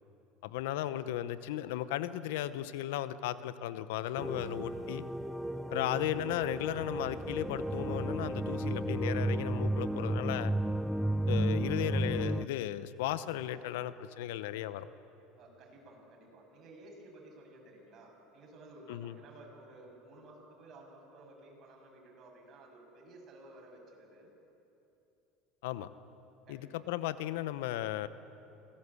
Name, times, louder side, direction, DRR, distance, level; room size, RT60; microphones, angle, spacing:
voice 1, 0.4-5.0 5.7-10.5 11.3-14.9 18.9-19.2 25.6-25.9 26.5-28.1, left 13 dB, 80° left, 14 dB, 0.9 m, -35 dB
sound 1, 4.2-12.5, right 1 dB, ahead, 0.5 m, -33 dB
voice 2, 15.3-24.3 26.5-26.8, right 2 dB, 45° right, 0 dB, 7.2 m, -54 dB
25.5 x 17.5 x 8.4 m, 2.9 s
supercardioid pair, 105°, 0 cm